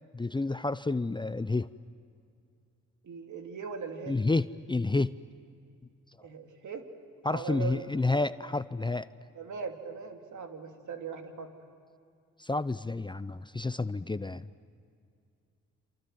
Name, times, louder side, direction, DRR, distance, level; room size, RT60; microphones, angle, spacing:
voice 1, 0.1-1.7 4.1-5.1 7.2-9.1 12.4-14.5, left 3 dB, 15° left, 14 dB, 0.6 m, -30 dB
voice 2, 3.0-4.2 6.2-6.8 7.3-7.8 9.3-11.5, right 5 dB, 65° right, 4 dB, 3.0 m, -39 dB
27.5 x 27.5 x 7.8 m, 2.4 s
supercardioid pair, 60°, 32 cm